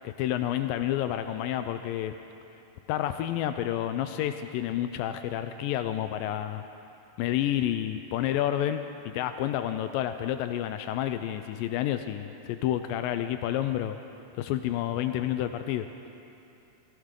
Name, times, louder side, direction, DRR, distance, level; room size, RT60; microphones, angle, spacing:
voice 1, 0.0-2.2 2.9-6.6 7.2-8.8 9.1-14.0 14.4-15.9, left 12 dB, 80° left, 8 dB, 2.1 m, -29 dB
18.0 x 16.0 x 3.7 m, 2.7 s
omnidirectional pair, 4.2 m